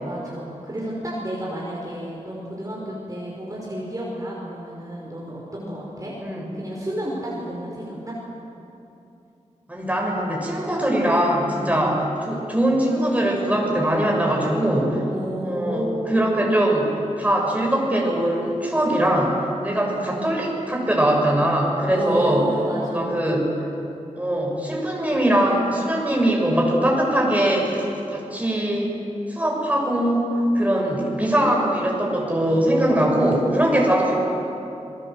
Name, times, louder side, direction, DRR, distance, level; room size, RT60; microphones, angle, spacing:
voice 1, 0.0-6.1 6.5-8.2 11.6-12.0 15.1-16.3 19.6-20.2 21.9-23.3, right 1 dB, 25° right, -4 dB, 5.5 m, -31 dB
voice 2, 9.7-15.0 15.4-16.9 17.2-19.4 19.6-22.4 22.8-23.5 24.2-28.9 29.3-34.2, right 1 dB, 10° right, -1 dB, 6.8 m, -21 dB
27.5 x 22.0 x 8.0 m, 2.9 s
wide cardioid pair, 95°, 13 cm